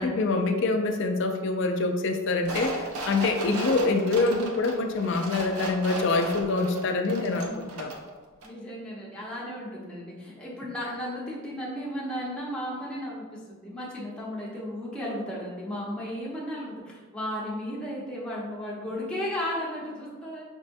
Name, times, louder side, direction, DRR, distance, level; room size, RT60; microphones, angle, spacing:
voice 1, 0.0-7.9, left 3 dB, 60° left, 5 dB, 0.4 m, -25 dB
sound 1, 2.4-8.1 8.4-8.5, right 2 dB, 85° right, 0.6 m, -36 dB
voice 2, 7.2-7.7 8.4-20.4, equal, 5° left, -7 dB, 0.8 m, -35 dB
6.0 x 2.1 x 2.6 m, 1.4 s
head